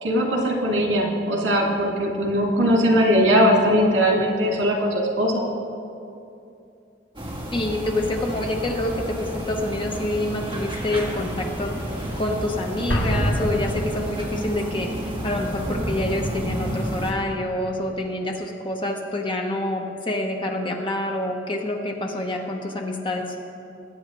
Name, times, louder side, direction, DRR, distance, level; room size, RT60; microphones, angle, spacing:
voice 1, 0.0-5.4, equal, 85° right, -1 dB, 2.3 m, -20 dB
sound 1, 7.2-17.1, equal, 25° right, 1.6 m, -31 dB
voice 2, 7.5-11.7 12.2-23.2, left 1 dB, 25° left, 1 dB, 1.1 m, -27 dB
Explosion, 12.9-14.6, equal, 70° left, 1.4 m, -25 dB
20.5 x 9.0 x 3.1 m, 2.7 s
head